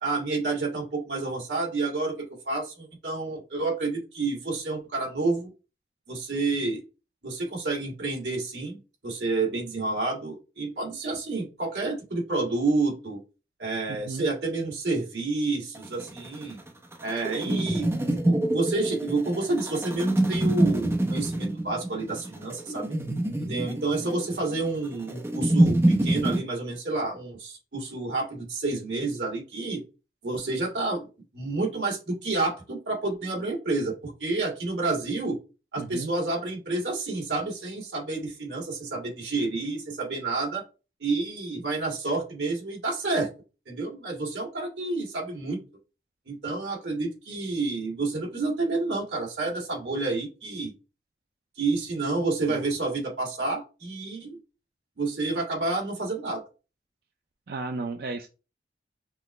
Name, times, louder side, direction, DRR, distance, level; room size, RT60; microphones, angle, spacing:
voice 1, 0.0-5.5 6.1-6.8 7.2-13.2 13.6-16.6 17.0-23.0 23.5-29.8 30.2-31.1 31.3-35.4 35.7-40.6 41.0-43.3 43.7-45.6 46.3-50.7 51.6-54.4 55.0-56.4, right 3 dB, 85° right, -1 dB, 2.0 m, -29 dB
voice 2, 13.9-14.3 17.5-17.7 35.8-36.1 52.5-52.6 57.5-58.3, right 3 dB, 60° right, 5 dB, 0.4 m, -34 dB
sound 1, 15.7-26.4, right 1 dB, 15° right, 0.6 m, -26 dB
5.9 x 2.1 x 3.1 m, 0.32 s
head